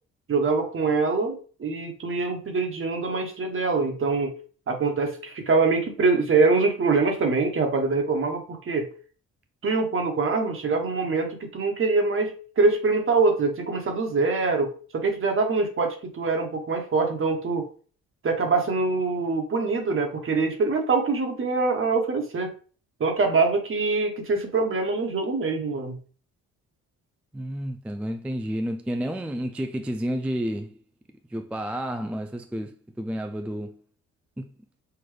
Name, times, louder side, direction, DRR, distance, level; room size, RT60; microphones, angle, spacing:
voice 1, 0.3-4.3 4.7-8.9 9.6-17.7 18.2-22.5 23.0-26.0, right 4 dB, 45° right, 1.3 m, -24 dB
voice 2, 27.3-30.8 31.3-33.8 34.4-34.5, equal, 5° right, 0.3 m, -30 dB
5.9 x 2.5 x 3.3 m
cardioid pair, 90°, 30 cm